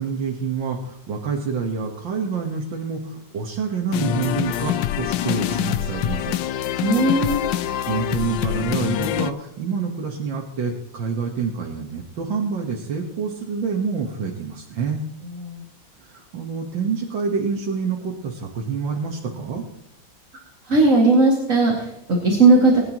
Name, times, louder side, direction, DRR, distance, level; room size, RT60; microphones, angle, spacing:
voice 1, 0.0-6.4 7.9-15.1 16.0-19.6, right 5 dB, 85° right, 0 dB, 2.1 m, -27 dB
sound 1, 3.9-9.3, left 12 dB, 80° left, 1.3 m, -25 dB
voice 2, 6.8-7.4 15.5-15.6 20.7-22.8, right 3 dB, 45° right, -3 dB, 2.8 m, -17 dB
21.0 x 10.5 x 3.0 m, 0.84 s
omnidirectional pair, 2.0 m